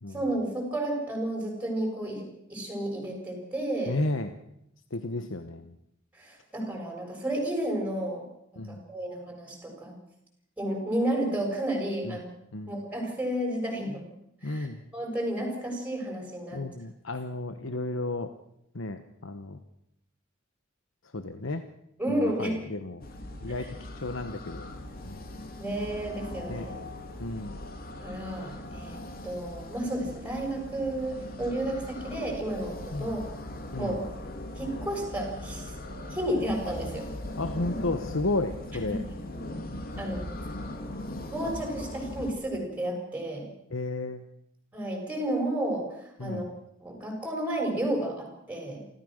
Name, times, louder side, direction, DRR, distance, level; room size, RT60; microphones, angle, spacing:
voice 1, 0.1-4.0 6.1-8.3 8.7-9.9 10.6-12.3 12.7-14.1 14.4-14.7 14.9-16.6 22.0-22.5 23.6-23.7 25.6-26.7 28.0-33.2 33.8-34.0 34.6-35.7 36.1-37.1 38.9-39.0 40.0-40.2 41.3-43.5 44.7-46.4 46.8-48.8, right 1 dB, 10° right, 0 dB, 7.3 m, -32 dB
voice 2, 3.9-4.4 4.9-5.8 8.6-8.8 12.0-12.2 12.5-12.7 14.4-14.8 16.5-18.3 18.7-19.6 21.1-21.6 22.1-23.0 23.4-24.7 25.0-25.2 26.5-26.7 27.2-27.6 32.9-33.1 33.7-34.0 37.4-39.0 43.7-44.2 46.2-46.4, left 2 dB, 80° left, 9 dB, 1.1 m, -33 dB
sound 1, 23.0-42.3, left 1 dB, 50° left, 2.5 m, -39 dB
28.0 x 14.5 x 6.5 m, 0.79 s
head